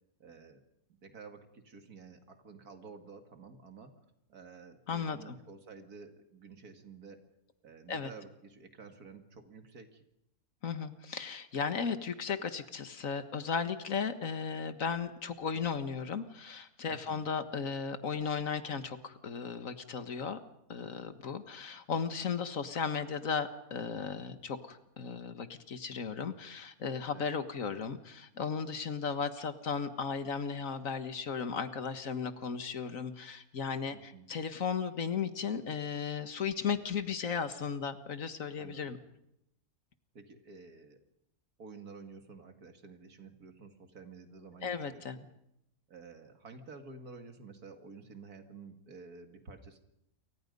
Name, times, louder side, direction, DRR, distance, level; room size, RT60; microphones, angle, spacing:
voice 1, 0.2-0.6 0.9-3.9 4.3-7.2 7.6-10.0 16.9-17.3 27.1-27.3 33.9-34.3 38.6-39.0 40.1-41.0 41.6-45.3 45.9-49.8, right 4 dB, 90° right, 6 dB, 2.7 m, -51 dB
voice 2, 4.9-5.3 7.9-8.1 10.6-20.4 20.7-39.0 44.6-45.2, left 6 dB, 60° left, 10 dB, 1.8 m, -35 dB
28.5 x 24.5 x 5.4 m, 0.82 s
omnidirectional pair, 1.5 m